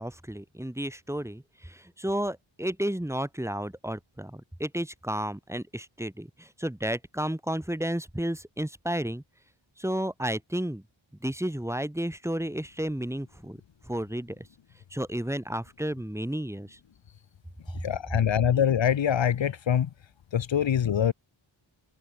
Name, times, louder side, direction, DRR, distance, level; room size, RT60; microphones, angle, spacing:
voice 1, 0.0-9.2 9.8-10.8 11.2-13.6 13.8-14.4 14.9-16.8, right 1 dB, 5° right, 3.9 m, -32 dB
voice 2, 17.7-19.9 20.3-21.1, left 9 dB, 70° left, 1.1 m, -24 dB
wide cardioid pair, 115°, 47 cm